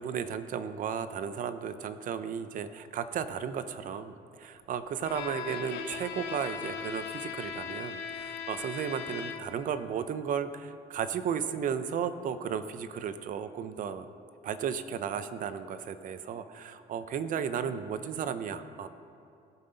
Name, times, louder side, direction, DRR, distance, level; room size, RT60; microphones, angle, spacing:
voice 1, 0.0-14.1 14.4-18.9, right 7 dB, 50° right, 11 dB, 0.6 m, -34 dB
Bowed string instrument, 5.0-9.7, left 7 dB, 80° left, 0.7 m, -39 dB
16.5 x 5.6 x 3.9 m, 2.5 s
cardioid pair, 110°, 17 cm